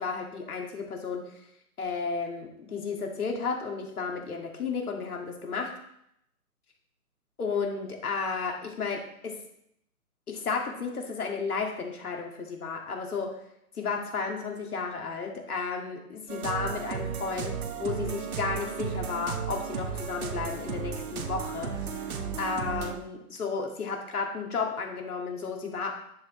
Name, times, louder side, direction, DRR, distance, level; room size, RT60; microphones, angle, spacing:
voice 1, 0.0-1.4 1.8-5.7 7.4-9.4 10.3-13.4 13.7-26.0, left 5 dB, 70° left, 1 dB, 2.5 m, -33 dB
sound 1, 16.3-23.0, right 6 dB, 65° right, 1.4 m, -34 dB
10.5 x 7.7 x 3.3 m, 0.75 s
hypercardioid pair, 155°, 46 cm